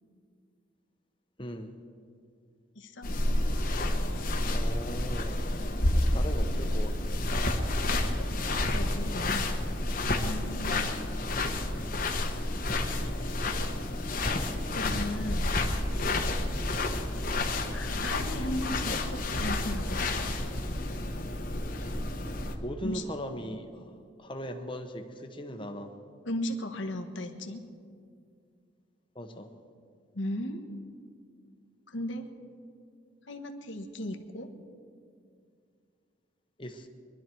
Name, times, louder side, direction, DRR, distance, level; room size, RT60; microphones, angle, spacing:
voice 1, 1.4-1.7 4.5-5.5 6.0-7.2 22.6-25.9 29.1-29.5 36.6-36.9, equal, 25° left, 5 dB, 1.1 m, -39 dB
voice 2, 2.7-3.1 7.9-8.3 8.6-9.5 10.2-11.0 12.9-13.1 14.7-15.6 17.7-20.3 22.8-23.0 26.2-27.7 30.1-30.6 31.9-32.3 33.2-34.5, left 1 dB, 75° left, 5 dB, 1.3 m, -36 dB
sound 1, 3.0-22.6, left 1 dB, 45° left, 1.1 m, -30 dB
23.0 x 12.0 x 4.6 m, 2.3 s
head